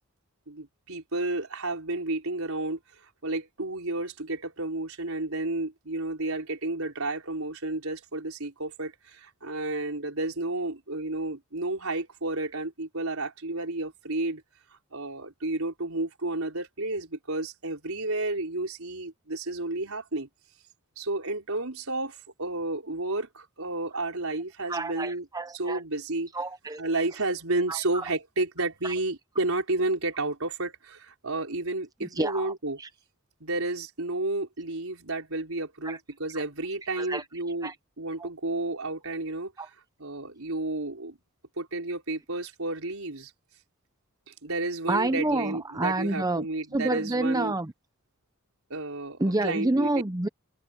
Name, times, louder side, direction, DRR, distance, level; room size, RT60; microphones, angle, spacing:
voice 1, 0.5-14.4 14.9-20.3 21.0-25.3 25.5-26.3 26.8-32.8 33.4-39.5 40.0-41.2 41.6-43.3 44.3-47.5 48.7-49.9, right 2 dB, 80° right, 4.4 m, -31 dB
voice 2, 24.7-25.8 26.3-26.8 27.7-27.8 32.2-32.5 35.8-36.0 37.0-37.2 37.6-37.7 38.2-38.3 39.6-39.7 44.9-46.5 46.7-47.7 49.2-50.3, right 2 dB, 15° right, 0.7 m, -28 dB
head